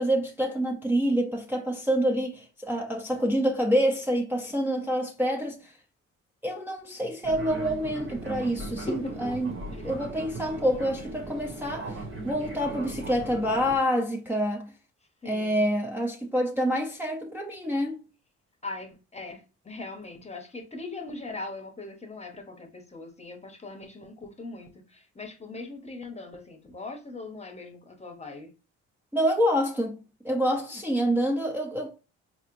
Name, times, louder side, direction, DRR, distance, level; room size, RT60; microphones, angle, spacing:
voice 1, 0.0-5.7 6.4-9.5 9.8-14.7 15.2-18.0 29.1-31.9, equal, 5° right, 0.6 m, -27 dB
Fixed-wing aircraft airplane, 7.2-13.8, right 2 dB, 40° right, 1.1 m, -38 dB
voice 2, 8.7-9.2 9.7-9.9 15.2-15.6 18.6-28.5, left 2 dB, 20° left, 0.9 m, -40 dB
4.2 x 2.9 x 2.5 m
cardioid pair, 90°, 30 cm